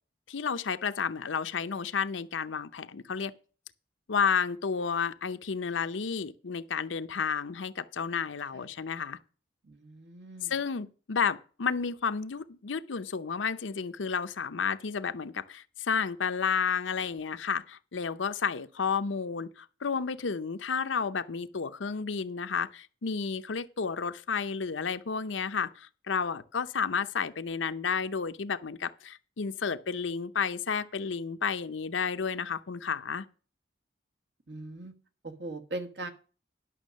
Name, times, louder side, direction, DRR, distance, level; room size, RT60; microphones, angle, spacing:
voice 1, 0.3-3.3 4.1-9.2 10.4-33.2, left 6 dB, 85° left, 0.7 m, -31 dB
voice 2, 9.7-10.5 34.5-34.9 35.2-36.1, right 2 dB, 65° right, 1.3 m, -40 dB
11.0 x 6.2 x 6.3 m
head